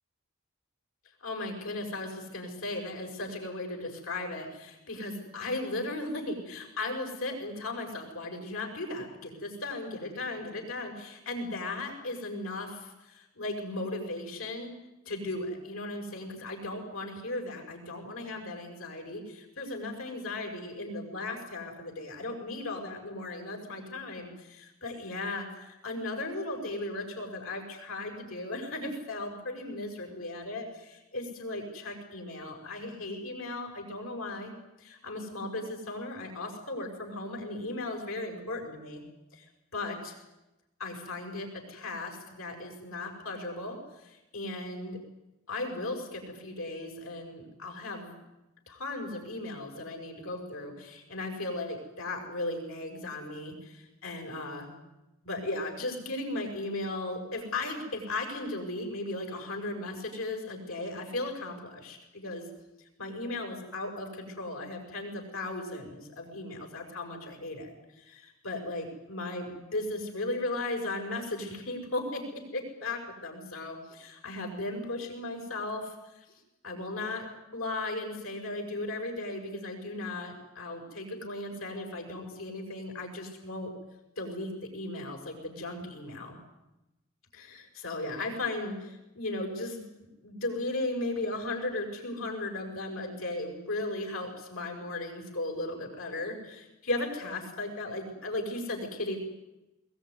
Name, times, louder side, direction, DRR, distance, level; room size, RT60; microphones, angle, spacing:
voice 1, 1.2-14.7 15.0-39.0 39.3-39.5 39.7-40.2 40.8-45.0 45.5-48.1 48.7-54.7 55.2-62.4 63.0-76.2 76.6-77.3 77.5-83.7 84.2-86.4 87.3-99.2, left 2 dB, 70° left, 3 dB, 6.4 m, -36 dB
21.5 x 21.0 x 9.7 m, 0.99 s
head